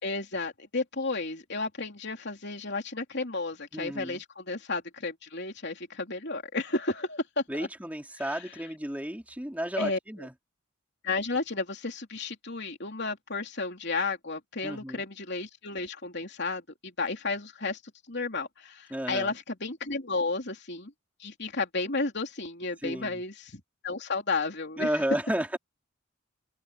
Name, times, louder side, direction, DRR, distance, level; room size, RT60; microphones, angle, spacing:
voice 1, 0.0-7.7 8.2-8.6 9.8-10.3 11.0-17.8 18.1-20.9 21.2-24.9, left 3 dB, 50° left, 3.6 m, -33 dB
voice 2, 3.7-4.2 7.5-10.3 14.6-15.0 18.9-19.3 22.8-23.1 24.8-25.6, right 1 dB, 5° right, 3.2 m, -32 dB
head